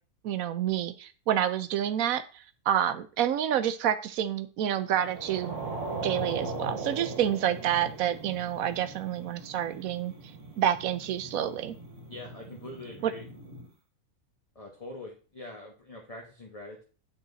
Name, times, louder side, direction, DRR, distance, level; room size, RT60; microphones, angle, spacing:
voice 1, 0.2-5.6 6.0-10.1 10.6-11.8 13.0-13.1, right 10 dB, 75° right, 12 dB, 1.1 m, -28 dB
sound 1, 4.9-13.7, right 3 dB, 60° right, 1.6 m, -39 dB
voice 2, 12.1-13.2 14.5-16.8, left 2 dB, 25° left, -1 dB, 1.2 m, -43 dB
8.7 x 4.1 x 4.0 m, 0.36 s
omnidirectional pair, 1.5 m